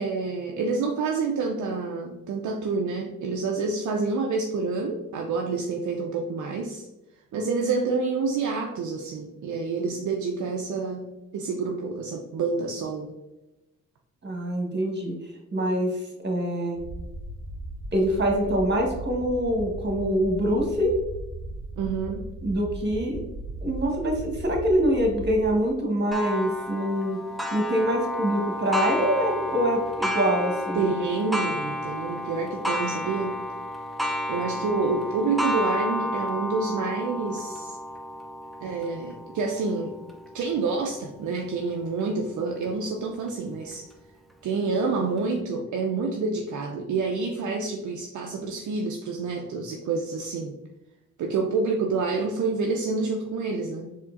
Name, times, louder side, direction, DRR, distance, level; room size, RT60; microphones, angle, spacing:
voice 1, 0.0-6.9 7.3-11.1 11.3-13.1 21.8-22.2 30.7-33.4 34.3-37.8 38.6-40.0 40.3-43.8 44.4-50.5 51.2-53.9, right 4 dB, 55° right, 1 dB, 0.5 m, -28 dB
voice 2, 14.2-15.2 15.5-15.9 16.2-16.8 17.9-20.9 22.4-23.2 23.6-27.2 27.5-30.9, equal, 30° right, 1 dB, 1.3 m, -25 dB
sound 1, 16.7-25.5, right 1 dB, 85° left, 1.4 m, -37 dB
Clock, 26.1-41.4 42.0-42.1 42.6-42.7 43.7-43.8, left 1 dB, ahead, 0.6 m, -31 dB
4.5 x 2.9 x 2.5 m, 0.98 s
hypercardioid pair, 45°, 35 cm